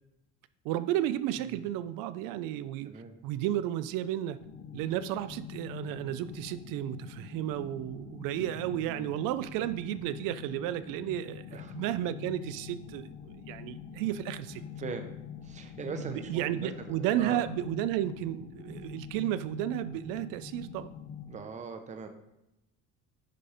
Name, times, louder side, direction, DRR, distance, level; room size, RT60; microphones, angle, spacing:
voice 1, 0.6-2.9 3.2-4.4 4.7-14.6 16.0-20.9, right 12 dB, 80° right, 13 dB, 0.5 m, -33 dB
voice 2, 1.4-1.7 2.8-3.2 8.4-9.1 11.5-11.8 14.8-15.2 15.4-17.4 21.3-22.1, right 5 dB, 20° right, 7 dB, 0.8 m, -41 dB
sound 1, 4.4-21.4, left 7 dB, 45° left, 0.9 m, -45 dB
10.5 x 4.3 x 5.0 m, 0.90 s
cardioid pair, 155°, 32 cm